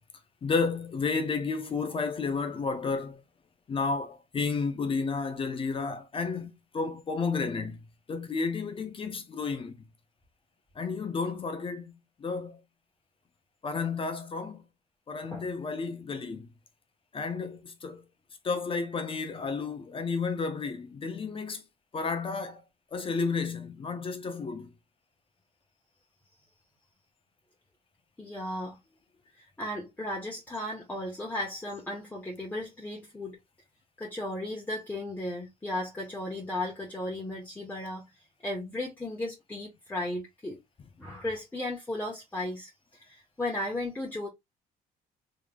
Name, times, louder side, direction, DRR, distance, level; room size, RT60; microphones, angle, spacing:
voice 1, 0.4-3.2 3.7-9.7 10.8-12.6 13.6-14.6 15.1-16.5 17.1-18.0 18.4-21.6 21.9-22.6 22.9-24.7, left 4 dB, 30° left, 0.7 m, -32 dB
voice 2, 28.2-28.8 29.4-33.4 34.0-38.0 38.4-40.6 41.0-42.7 43.0-44.3, left 1 dB, 10° left, 1.0 m, -35 dB
3.5 x 3.2 x 2.2 m
cardioid pair, 110°, 17 cm